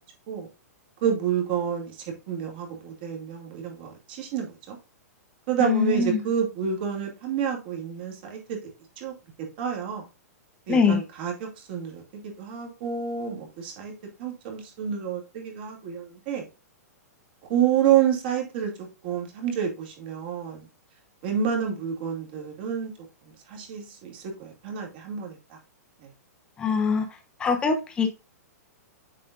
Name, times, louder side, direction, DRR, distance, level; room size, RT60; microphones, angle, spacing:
voice 1, 1.0-1.9 2.3-4.8 5.5-8.6 9.0-9.1 9.6-10.0 10.7-12.0 12.4-13.9 14.2-16.4 17.5-18.7 19.0-20.6 21.2-22.9 23.5-25.4, right 8 dB, 35° right, 2.5 m, -28 dB
voice 2, 5.6-6.3 10.7-11.0 26.6-27.1 27.4-28.1, left 5 dB, 10° left, 0.9 m, -23 dB
7.5 x 6.8 x 2.5 m
hypercardioid pair, 170°, 9 cm